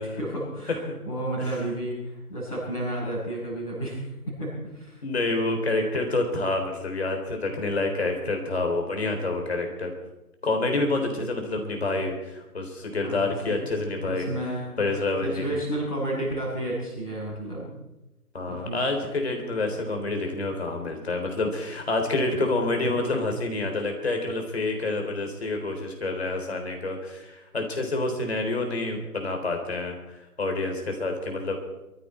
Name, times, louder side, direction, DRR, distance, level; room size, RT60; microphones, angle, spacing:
voice 1, 0.0-4.0 4.4-5.0 13.0-13.3 14.0-14.7 15.2-17.6 18.4-18.8, right 1 dB, ahead, -22 dB, 0.9 m, -31 dB
voice 2, 5.0-9.9 10.4-14.3 14.8-15.6 18.3-31.6, left 2 dB, 40° left, 3 dB, 3.7 m, -28 dB
23.0 x 14.0 x 4.4 m, 0.99 s
figure-of-eight pair, 155°, 46 cm